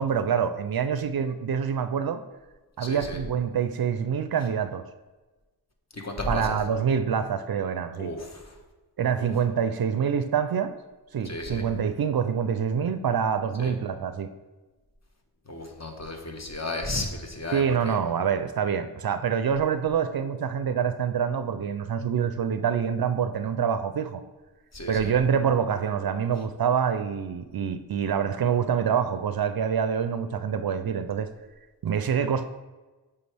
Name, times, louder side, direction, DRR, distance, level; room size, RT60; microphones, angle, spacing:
voice 1, 0.0-2.2 2.8-4.9 6.3-8.1 9.0-10.7 11.1-14.3 17.5-24.2 24.9-31.3 31.8-32.4, right 7 dB, 60° right, 10 dB, 0.5 m, -26 dB
voice 2, 2.8-3.2 5.9-6.5 8.0-8.6 9.2-9.3 11.2-11.6 13.6-13.7 15.5-18.0 24.7-25.1, left 1 dB, 40° left, 2 dB, 1.2 m, -34 dB
7.8 x 4.9 x 3.4 m, 1.2 s
wide cardioid pair, 60°, 42 cm